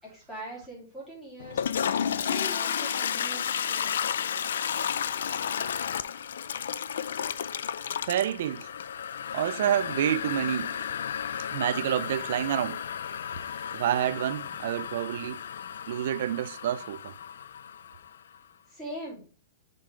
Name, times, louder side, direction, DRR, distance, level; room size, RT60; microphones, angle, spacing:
voice 1, 0.0-1.7 2.2-3.9 18.7-19.2, equal, 10° left, 3.3 m, -41 dB
Toilet flush, 1.4-18.2, left 8 dB, 85° left, 0.4 m, -32 dB
voice 2, 8.1-8.7 9.3-10.8 11.5-12.8 13.7-15.4 15.9-17.2, right 11 dB, 55° right, 0.4 m, -28 dB
6.5 x 5.3 x 3.2 m
supercardioid pair, 170°, 0 cm